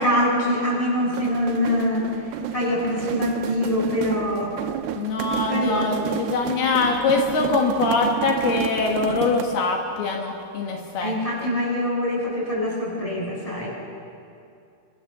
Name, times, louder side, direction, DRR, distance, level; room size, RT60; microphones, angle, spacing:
voice 1, 0.0-4.5 5.4-6.0 11.0-13.7, left 1 dB, 10° left, -3 dB, 7.3 m, -24 dB
sound 1, 1.0-9.7, right 12 dB, 85° right, 2.8 m, -30 dB
voice 2, 5.0-11.2 11.4-11.5, left 4 dB, 75° left, 1 dB, 3.6 m, -23 dB
28.0 x 26.0 x 7.0 m, 2.5 s
omnidirectional pair, 4.7 m